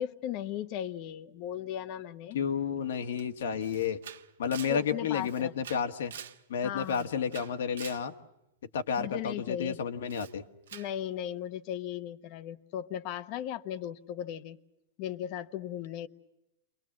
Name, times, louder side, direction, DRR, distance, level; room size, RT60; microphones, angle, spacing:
voice 1, 0.0-2.4 4.7-5.5 6.6-7.1 9.0-9.8 10.7-14.6 15.0-16.1, left 10 dB, 35° left, 13 dB, 1.0 m, -37 dB
voice 2, 2.3-4.0 4.4-6.1 6.5-8.1 8.7-10.4, left 7 dB, 80° left, 7 dB, 1.7 m, -31 dB
Camera, 3.2-3.3 3.6-6.4 6.8-8.1 10.1-10.3 10.7-10.9, right 9 dB, 90° right, 1.4 m, -46 dB
29.5 x 23.0 x 7.5 m, 0.90 s
supercardioid pair, 165°, 0 cm